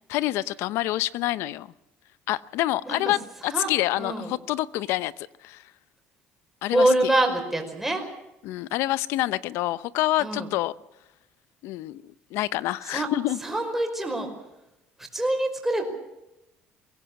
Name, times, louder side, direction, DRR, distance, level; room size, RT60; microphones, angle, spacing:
voice 1, 0.1-1.7 2.3-5.6 6.6-7.1 8.4-10.7 11.6-12.0 12.3-13.4, left 16 dB, 80° left, 18 dB, 0.8 m, -27 dB
voice 2, 4.0-4.3 6.7-8.0 10.2-10.5 12.9-13.1 13.4-14.3 15.1-15.8, right 1 dB, 5° right, 3 dB, 5.2 m, -24 dB
22.5 x 17.0 x 8.6 m, 0.90 s
cardioid pair, 120°, 4 cm